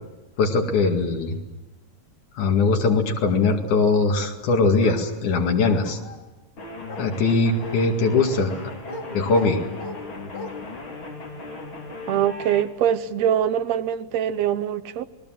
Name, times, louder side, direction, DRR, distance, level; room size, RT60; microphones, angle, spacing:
voice 1, 0.4-1.4 2.4-6.0 7.0-8.7 9.1-9.6, left 4 dB, 80° left, 3 dB, 3.7 m, -21 dB
Bark, 4.8-5.0 5.6-6.2 6.9-7.1 7.6-7.8 8.2-8.4 8.9-9.0 9.3-10.0 10.3-10.5, left 2 dB, 60° left, 4.1 m, -36 dB
sound 1, 6.6-12.6, left 3 dB, 40° left, 4.1 m, -37 dB
voice 2, 12.1-15.1, right 10 dB, 70° right, 12 dB, 2.0 m, -23 dB
28.0 x 20.0 x 7.7 m, 1.1 s
omnidirectional pair, 3.4 m